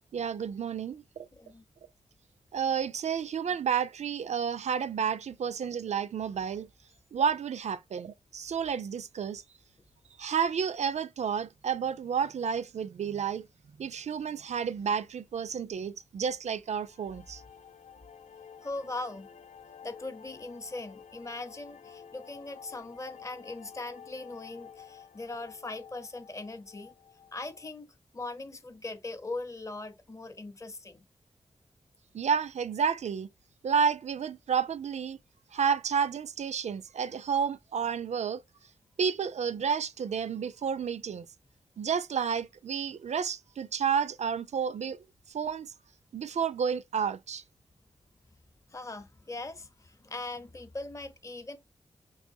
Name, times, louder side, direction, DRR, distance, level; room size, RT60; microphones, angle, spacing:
voice 1, 0.1-1.3 2.5-6.7 7.1-9.4 10.2-13.5 13.8-17.4 32.1-33.3 33.6-35.2 35.5-38.4 39.0-41.3 41.8-45.0 45.3-45.7 46.1-47.4, right 7 dB, 75° right, 0.4 m, -31 dB
voice 2, 1.3-1.6 18.6-19.3 19.8-26.9 27.3-31.1 48.7-51.6, left 2 dB, 25° left, 0.7 m, -40 dB
sound 1, 16.6-27.7, left 7 dB, 80° left, 0.5 m, -51 dB
4.8 x 2.9 x 2.6 m
wide cardioid pair, 75°, 12 cm